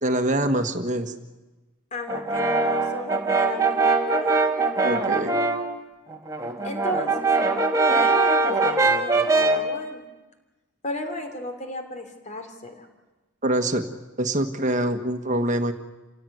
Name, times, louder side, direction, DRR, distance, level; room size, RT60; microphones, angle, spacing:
voice 1, 0.0-1.1 4.8-5.4 13.4-13.8 14.2-15.7, right 1 dB, 35° right, 7 dB, 1.5 m, -24 dB
voice 2, 1.9-4.3 6.6-7.3 7.9-10.0 10.8-12.9, left 1 dB, 35° left, 6 dB, 3.3 m, -34 dB
Brass instrument, 2.1-5.7 6.1-9.7, right 3 dB, 15° right, 1.8 m, -22 dB
28.0 x 17.0 x 9.4 m, 1.1 s
head